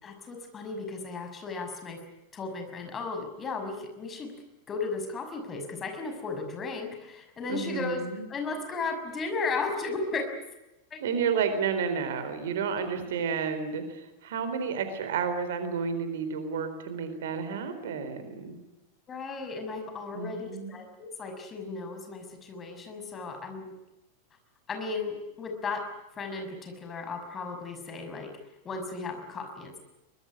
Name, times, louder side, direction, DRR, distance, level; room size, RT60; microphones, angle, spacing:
voice 1, 0.0-2.0 2.3-4.3 4.7-10.3 10.9-11.0 12.8-12.9 19.1-23.7 24.7-25.8 26.2-28.3 28.6-29.8, left 4 dB, 20° left, 5 dB, 6.0 m, -35 dB
voice 2, 7.5-8.2 11.0-18.6 20.1-20.8, right 6 dB, 55° right, 10 dB, 4.0 m, -31 dB
24.0 x 21.5 x 9.7 m, 0.97 s
figure-of-eight pair, 90°, 0 cm